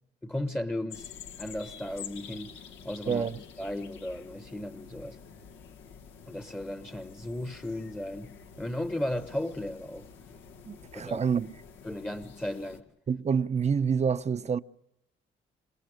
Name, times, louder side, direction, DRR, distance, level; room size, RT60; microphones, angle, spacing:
voice 1, 0.2-1.1 1.4-3.3 3.6-5.2 6.3-10.1 10.9-11.2 11.8-12.8, left 1 dB, 10° left, 1.1 m, -35 dB
sound 1, 0.9-12.8, left 7 dB, 85° left, 1.7 m, -48 dB
voice 2, 3.1-3.4 10.7-11.6 13.1-14.6, right 6 dB, 35° right, 0.8 m, -27 dB
28.0 x 18.5 x 6.5 m
cardioid pair, 90°, 20 cm